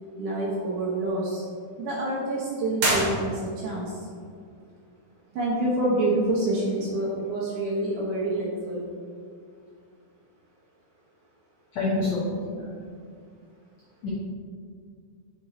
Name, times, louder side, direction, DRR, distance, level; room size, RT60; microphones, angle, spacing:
voice 1, 0.2-1.4 1.8-4.1 5.3-8.9, right 1 dB, 70° right, -5 dB, 2.1 m, -27 dB
sound 1, 2.7-3.8, right 1 dB, 90° right, 1.1 m, -27 dB
voice 2, 11.7-12.7 14.0-14.1, left 2 dB, 80° left, -6 dB, 1.6 m, -27 dB
6.5 x 4.5 x 3.9 m, 2.1 s
omnidirectional pair, 4.5 m